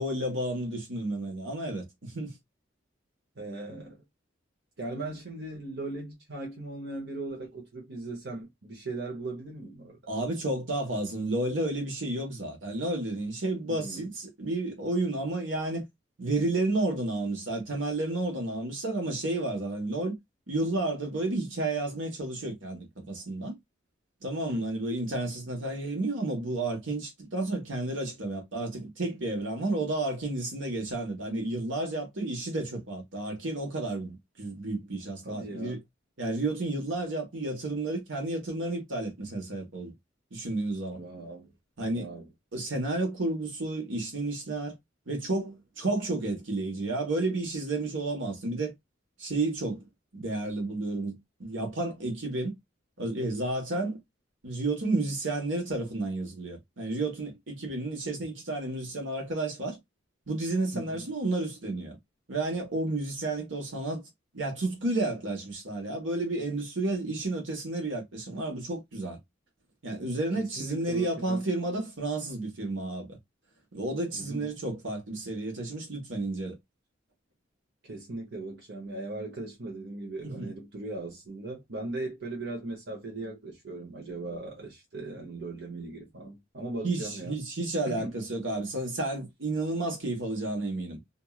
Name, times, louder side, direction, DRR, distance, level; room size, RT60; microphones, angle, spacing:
voice 1, 0.0-2.4 10.1-15.8 16.2-20.2 20.5-23.6 24.2-35.8 36.2-39.9 40.3-41.0 41.8-42.1 42.5-44.8 45.1-48.7 49.2-49.9 50.1-52.6 53.0-54.0 54.4-59.8 60.3-62.0 62.3-64.0 64.3-69.2 69.8-73.2 73.7-76.6 80.2-80.5 86.8-91.0, right 2 dB, 80° right, 1.2 m, -31 dB
voice 2, 3.4-4.0 4.8-10.0 13.7-14.1 24.5-24.8 35.2-35.8 40.9-41.5 41.9-42.2 60.7-61.1 70.3-71.4 74.1-74.5 77.8-87.4 87.9-88.1, right 2 dB, 65° right, 1.0 m, -38 dB
3.0 x 2.6 x 2.3 m
head